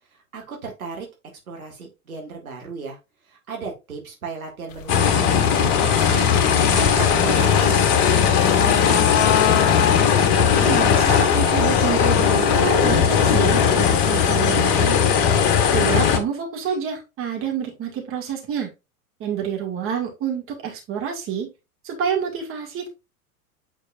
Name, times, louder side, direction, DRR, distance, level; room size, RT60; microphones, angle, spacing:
voice 1, 0.1-1.1 1.5-3.0 3.3-6.3 6.7-8.9 13.1-13.4, right 4 dB, 70° right, 1 dB, 1.9 m, -35 dB
sound 1, 4.7-15.1, left 9 dB, 60° left, 0.8 m, -29 dB
sound 2, 4.9-16.2, left 7 dB, 40° left, 1.3 m, -18 dB
voice 2, 10.3-15.0 15.7-18.7 19.2-21.5 21.8-22.9, right 7 dB, 30° right, 1 dB, 2.4 m, -28 dB
8.6 x 4.5 x 2.6 m, 0.25 s
figure-of-eight pair, 90°, 44 cm